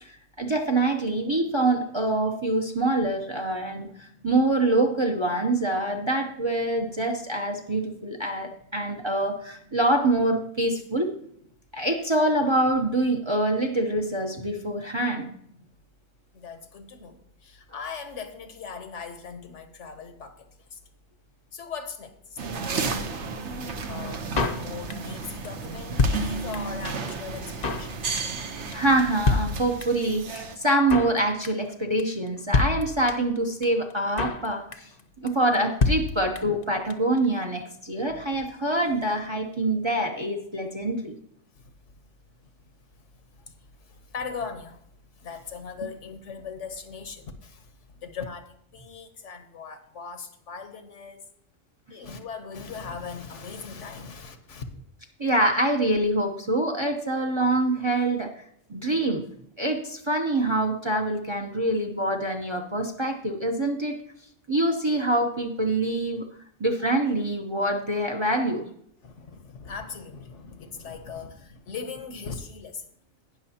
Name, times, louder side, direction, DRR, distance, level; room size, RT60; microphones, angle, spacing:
voice 1, 0.0-11.1 11.7-15.3 28.7-34.9 35.2-41.1 55.2-58.4 58.7-59.2 59.6-64.0 64.5-66.2 66.6-68.6, right 1 dB, 25° right, 4 dB, 0.8 m, -25 dB
voice 2, 16.3-20.5 20.7-20.8 21.5-22.2 22.7-23.0 23.9-28.2 38.1-38.2 43.9-44.8 45.2-47.7 48.0-51.2 51.9-54.7 69.0-72.8, left 5 dB, 65° left, 8 dB, 1.2 m, -39 dB
sound 1, 22.4-30.6, right 4 dB, 60° right, 1.2 m, -33 dB
Drum kit, 24.4-25.2 25.4-25.5 25.7-26.8 27.1-27.2 27.4-27.9 28.2-28.5 28.7-28.8 29.0-29.1 29.3-30.1 30.4-30.5 30.6-31.2 31.4-31.7 32.0-32.1 32.3-32.4 32.5-33.4 33.6-33.7 33.9-34.5 34.7-35.0 35.3-35.4 35.5-35.6 35.8-36.6 36.9-37.0 37.2-37.3, left 4 dB, 40° left, 0.7 m, -26 dB
18.5 x 6.2 x 2.8 m, 0.70 s
omnidirectional pair, 1.4 m